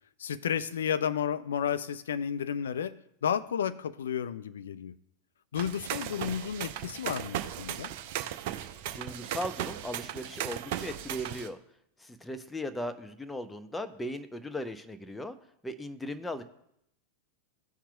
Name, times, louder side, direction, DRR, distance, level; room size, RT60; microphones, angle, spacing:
voice 1, 0.2-5.0 5.5-7.9, left 8 dB, 65° left, 13 dB, 0.4 m, -32 dB
sound 1, 5.5-11.5, right 11 dB, 50° right, 0.5 m, -37 dB
voice 2, 8.9-11.6 12.0-15.4 15.6-16.4, left 1 dB, 5° left, 9 dB, 0.6 m, -37 dB
16.5 x 5.8 x 2.3 m, 0.77 s
figure-of-eight pair, 90°, 0 cm